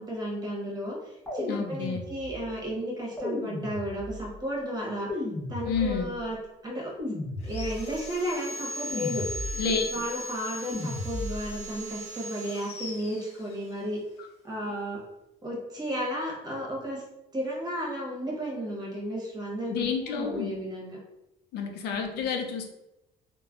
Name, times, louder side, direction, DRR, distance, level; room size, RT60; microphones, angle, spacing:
voice 1, 0.0-5.2 5.5-6.4 6.6-7.1 7.4-9.3 9.6-14.0 14.4-15.0 15.4-17.0 17.3-21.0 21.9-22.3, equal, 25° right, -3 dB, 1.1 m, -33 dB
sound 1, 1.3-2.5 3.2-4.3 5.1-6.2 7.0-8.0 8.9-9.8 10.7-11.6, left 2 dB, 10° left, 0.9 m, -35 dB
voice 2, 1.5-2.1 5.7-6.1 9.6-9.8 19.7-20.5 21.5-22.6, left 6 dB, 75° left, 4 dB, 0.5 m, -30 dB
Sawing, 7.4-13.9, equal, 40° left, 0.7 m, -39 dB
3.1 x 2.2 x 2.4 m, 0.90 s
cardioid pair, 110°, 17 cm